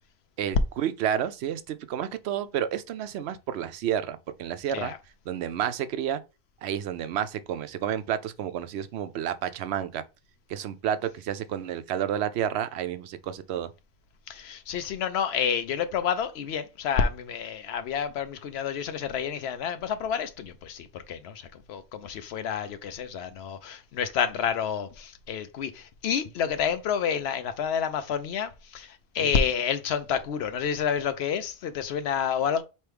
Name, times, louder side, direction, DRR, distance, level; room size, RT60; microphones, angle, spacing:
voice 1, 0.4-4.9 5.3-6.2 6.6-10.0 10.5-13.7 29.2-29.3, right 9 dB, 90° right, 0.8 m, -30 dB
voice 2, 14.3-32.6, left 7 dB, 80° left, 0.8 m, -29 dB
4.5 x 3.1 x 3.3 m
omnidirectional pair, 1.1 m